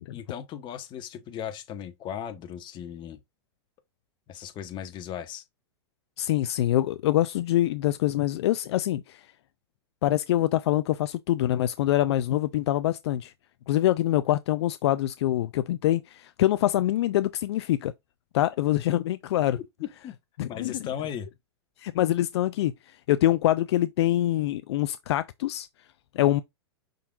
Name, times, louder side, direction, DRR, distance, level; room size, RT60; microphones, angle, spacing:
voice 1, 0.1-3.2 4.3-5.4 19.5-19.6 20.0-20.1 20.5-21.3, left 9 dB, 35° left, 1.3 m, -37 dB
voice 2, 6.2-9.3 10.0-13.3 13.7-17.9 18.3-19.6 20.4-20.8 21.8-25.7 26.1-26.4, left 13 dB, 70° left, 0.4 m, -25 dB
5.5 x 3.8 x 2.4 m
hypercardioid pair, 120°, 14 cm